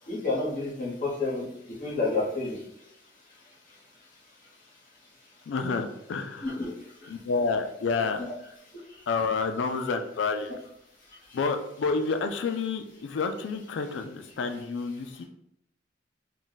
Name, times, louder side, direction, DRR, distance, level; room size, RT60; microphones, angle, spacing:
voice 1, 0.1-1.5 1.8-2.6 6.4-6.7 8.2-8.3, left 3 dB, 50° left, -5 dB, 1.0 m, -29 dB
voice 2, 5.5-6.5 7.1-8.3 9.1-10.5 11.3-15.2, left 4 dB, 90° left, 7 dB, 0.4 m, -29 dB
2.4 x 2.1 x 3.9 m, 0.75 s
head